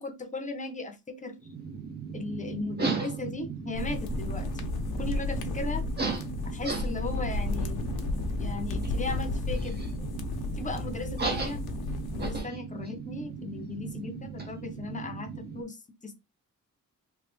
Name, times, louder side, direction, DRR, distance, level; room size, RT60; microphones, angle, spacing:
voice 1, 0.0-1.4 2.1-4.5 5.0-5.8 6.4-7.8 8.4-9.8 10.5-11.6 12.1-16.2, left 3 dB, 20° left, 0.6 m, -37 dB
sound 1, 1.4-15.6, right 5 dB, 30° right, 0.6 m, -37 dB
sound 2, 3.7-12.4, left 2 dB, 80° left, 0.7 m, -33 dB
3.2 x 2.2 x 3.2 m
wide cardioid pair, 160°, 36 cm